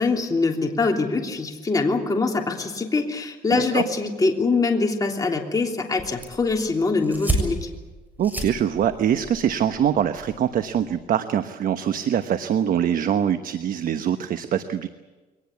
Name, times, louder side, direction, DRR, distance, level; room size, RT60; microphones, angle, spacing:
voice 1, 0.0-7.7, left 3 dB, 20° left, 1 dB, 3.2 m, -23 dB
voice 2, 3.5-3.8 8.2-14.9, right 9 dB, 55° right, 10 dB, 1.1 m, -23 dB
sound 1, 6.0-11.0, right 1 dB, 10° right, 7.2 m, -32 dB
23.0 x 19.5 x 8.4 m, 1.2 s
cardioid pair, 110°, 17 cm